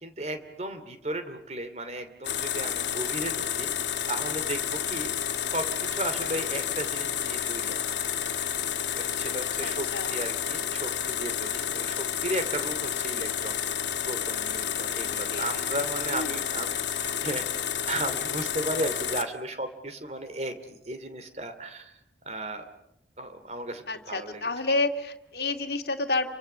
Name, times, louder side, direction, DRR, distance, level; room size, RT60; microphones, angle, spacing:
voice 1, 0.0-5.1 5.5-8.0 9.0-13.6 14.1-17.4 17.9-21.9 22.2-22.6 23.2-24.5, right 1 dB, 35° right, 9 dB, 2.8 m, -35 dB
sound 1, 2.2-19.2, left 9 dB, 80° left, 2.0 m, -30 dB
voice 2, 9.3-10.1 15.0-15.5 16.1-16.3 23.9-26.3, left 2 dB, 60° left, 4 dB, 2.2 m, -30 dB
30.0 x 24.5 x 6.9 m, 0.81 s
head